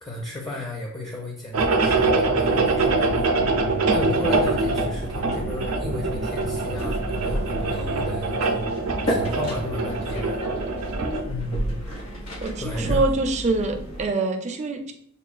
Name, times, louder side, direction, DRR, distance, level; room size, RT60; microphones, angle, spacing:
voice 1, 0.0-3.4 3.9-10.4 11.3-11.8 12.6-13.1, left 1 dB, 20° left, 0 dB, 0.5 m, -34 dB
sound 1, 1.5-11.2, right 3 dB, 90° right, 0.5 m, -24 dB
sound 2, 1.6-14.1, equal, 75° left, 1.4 m, -33 dB
voice 2, 12.4-14.9, right 3 dB, 35° right, 4 dB, 0.4 m, -25 dB
6.7 x 2.3 x 2.4 m, 0.66 s
head